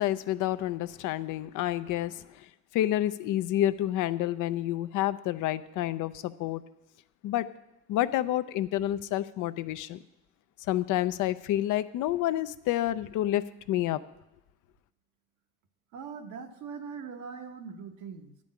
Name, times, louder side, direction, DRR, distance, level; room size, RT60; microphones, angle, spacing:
voice 1, 0.0-2.2 2.7-6.6 7.2-7.5 7.9-10.0 10.7-14.0, left 13 dB, 90° left, 14 dB, 0.5 m, -29 dB
voice 2, 15.9-18.4, right 6 dB, 80° right, 6 dB, 1.1 m, -41 dB
10.5 x 5.3 x 8.4 m, 0.94 s
cardioid pair, 90°, 30 cm